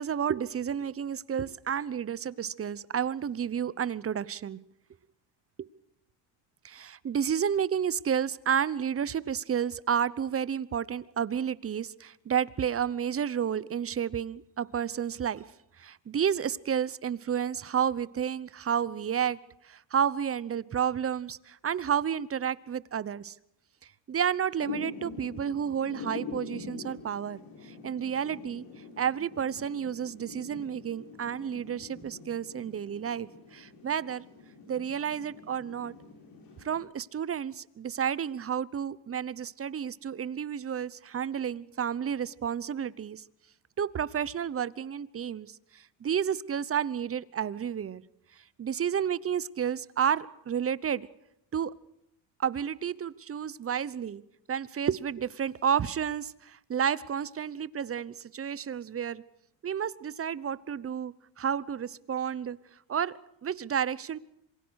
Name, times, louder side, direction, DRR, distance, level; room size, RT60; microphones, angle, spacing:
voice 1, 0.0-4.6 6.6-15.4 15.8-19.4 19.6-23.3 24.1-28.6 29.0-34.2 34.7-35.9 36.6-43.2 43.8-48.0 48.6-51.1 51.5-51.7 52.4-54.2 54.5-59.2 59.6-62.6 62.9-64.2, right 8 dB, 30° right, 19 dB, 0.9 m, -31 dB
Thunder / Rain, 24.6-36.8, left 4 dB, 45° left, 7.2 m, -45 dB
26.5 x 23.0 x 6.5 m, 0.75 s
cardioid pair, 110°, 49 cm